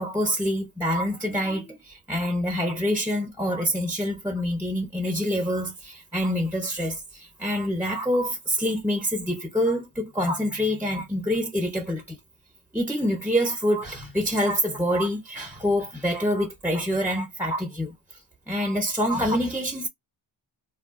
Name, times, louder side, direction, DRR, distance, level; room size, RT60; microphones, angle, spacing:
voice 1, 0.0-12.2 12.7-18.0 18.5-19.9, equal, 5° right, 0.5 m, -26 dB
2.3 x 2.3 x 3.5 m
wide cardioid pair, 95°, 48 cm